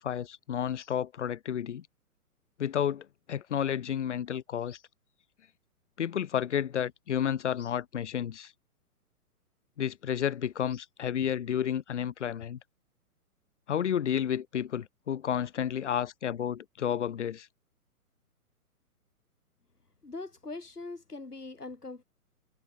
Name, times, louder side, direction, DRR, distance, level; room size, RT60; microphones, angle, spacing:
voice 1, 0.0-1.9 2.6-4.8 6.0-8.5 9.8-12.6 13.7-17.5, left 9 dB, 50° left, 3.0 m, -31 dB
voice 2, 20.0-22.0, left 3 dB, 80° left, 4.4 m, -41 dB
figure-of-eight pair, 125°, 46 cm